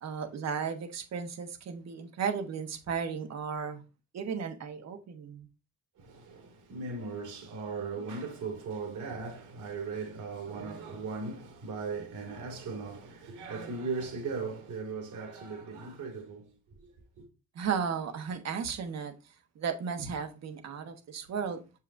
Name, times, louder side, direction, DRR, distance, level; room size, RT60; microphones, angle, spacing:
voice 1, 0.0-3.8 4.1-5.5 17.5-19.1 19.5-21.6, right 6 dB, 60° right, 1.2 m, -34 dB
voice 2, 6.0-16.5, right 4 dB, 85° right, 2.5 m, -38 dB
6.6 x 5.6 x 2.6 m
cardioid pair, 90°, 30 cm